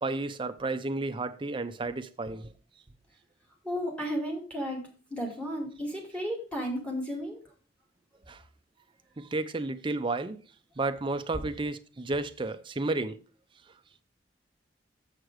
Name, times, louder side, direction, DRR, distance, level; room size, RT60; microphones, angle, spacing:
voice 1, 0.0-2.5 8.3-8.4 9.2-10.4 10.8-13.2, right 2 dB, 25° right, 0.5 m, -32 dB
voice 2, 3.6-7.4, equal, 5° left, 2.3 m, -33 dB
7.4 x 6.4 x 4.7 m
head